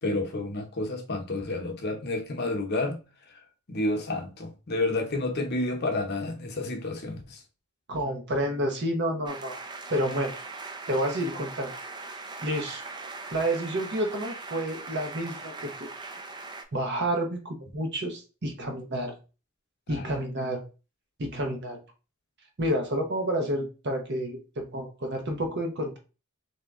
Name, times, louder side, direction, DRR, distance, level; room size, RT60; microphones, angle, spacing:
voice 1, 0.0-3.0 3.3-3.4 3.7-7.4 19.9-20.1, left 2 dB, 50° left, 0.8 m, -30 dB
voice 2, 7.9-9.6 9.9-10.3 10.9-11.7 12.1-12.8 13.3-15.9 16.7-19.2 19.9-20.6 21.2-21.8 22.6-26.0, right 1 dB, 55° right, 0.9 m, -30 dB
sound 1, 9.3-16.6, right 3 dB, 20° right, 0.4 m, -40 dB
3.3 x 2.8 x 3.6 m
head